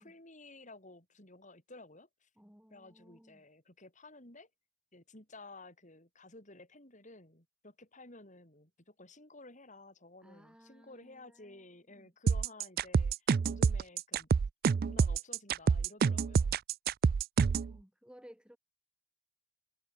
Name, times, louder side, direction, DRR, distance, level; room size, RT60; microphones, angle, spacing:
voice 1, 0.0-2.3 2.7-4.5 4.9-13.2 13.4-14.3 14.8-16.6, left 2 dB, 40° left, 7.4 m, -54 dB
voice 2, 2.4-3.4 10.2-11.6 11.9-12.1 17.7-18.6, equal, 5° right, 4.5 m, -58 dB
sound 1, 12.3-17.7, right 5 dB, 50° right, 0.3 m, -27 dB
head